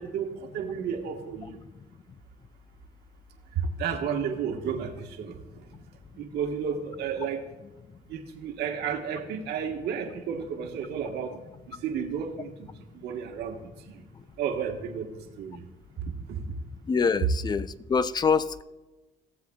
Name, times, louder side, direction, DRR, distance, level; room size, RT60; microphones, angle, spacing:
voice 1, 0.0-1.6 3.5-5.7 6.2-7.5 8.1-11.4 11.7-12.7 12.9-14.0 14.4-15.1 15.4-15.6 16.3-16.5, right 7 dB, 80° right, 3 dB, 1.3 m, -32 dB
voice 2, 16.9-18.6, left 5 dB, 25° left, 15 dB, 0.4 m, -25 dB
17.0 x 7.6 x 2.3 m, 1.1 s
cardioid pair, 110°, 17 cm